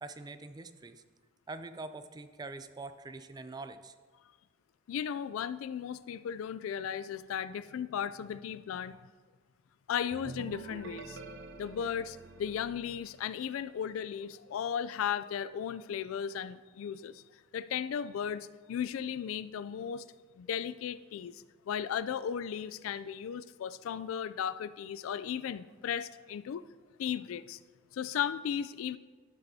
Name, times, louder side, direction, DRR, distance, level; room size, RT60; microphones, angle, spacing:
voice 1, 0.0-1.0 1.5-4.0, right 3 dB, 20° right, 10 dB, 0.4 m, -44 dB
voice 2, 4.9-9.0 9.9-11.2 11.6-17.2 17.5-26.6 27.0-27.6 27.9-29.0, left 8 dB, 75° left, 15 dB, 0.3 m, -36 dB
sound 1, 10.1-13.8, right 3 dB, 65° right, 0.6 m, -47 dB
12.0 x 6.9 x 2.7 m, 1.4 s
head